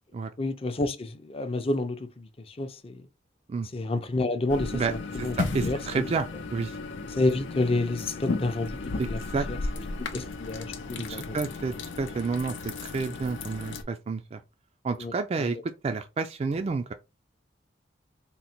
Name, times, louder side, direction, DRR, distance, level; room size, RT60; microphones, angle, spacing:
voice 1, 0.4-3.1 3.7-5.3 5.6-6.0 7.2-9.2 9.5-9.6 10.0-11.4 15.0-15.1 15.4-15.5, left 2 dB, 30° left, 0.5 m, -29 dB
sound 1, 4.5-13.8, left 3 dB, 90° left, 0.6 m, -35 dB
voice 2, 4.7-6.8 9.0-9.5 11.1-14.4 14.8-16.9, right 4 dB, 35° right, 0.3 m, -30 dB
3.8 x 2.1 x 4.3 m
head